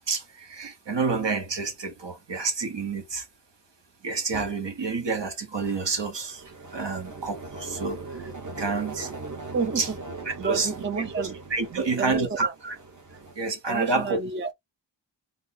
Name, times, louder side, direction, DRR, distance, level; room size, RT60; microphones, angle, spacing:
voice 1, 0.1-3.2 4.0-6.4 6.7-8.3 8.6-9.1 9.8-9.9 10.2-10.7 11.5-12.8 13.4-14.2, right 4 dB, 70° right, 1.1 m, -28 dB
sound 1, 5.6-13.3, right 3 dB, 40° right, 1.1 m, -40 dB
voice 2, 9.5-10.0 10.4-11.4 11.7-12.5 13.7-14.5, right 5 dB, 25° right, 0.5 m, -30 dB
3.5 x 2.1 x 4.0 m
wide cardioid pair, 85°, 45 cm